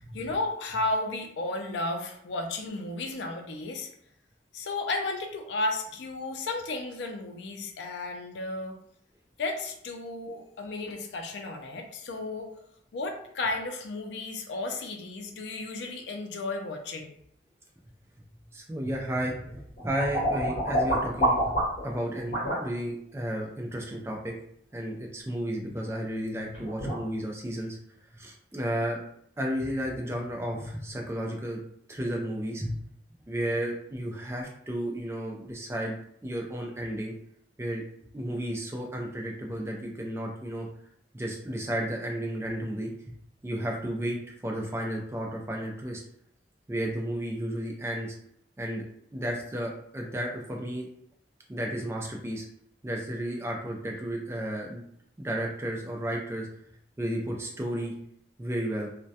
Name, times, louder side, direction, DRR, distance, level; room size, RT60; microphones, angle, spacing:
voice 1, 0.1-3.9 4.5-8.8 9.4-12.5 12.9-17.2, left 2 dB, 80° left, 4 dB, 0.4 m, -33 dB
voice 2, 18.5-21.5 21.8-24.4 24.7-27.8 28.1-29.0 29.4-31.6 31.9-32.8 33.3-36.0 36.2-37.1 37.6-37.8 38.1-40.7 41.1-43.1 43.4-46.0 46.7-48.2 48.6-48.8 49.1-50.9 51.5-52.5 52.8-54.8 55.2-56.5 57.0-57.9 58.4-58.9, right 1 dB, 15° right, 0 dB, 0.3 m, -33 dB
sound 1, 19.5-21.9 22.3-22.6 26.1-26.2 26.5-27.0, right 1 dB, 45° left, 1.0 m, -27 dB
2.2 x 2.1 x 2.7 m, 0.69 s
head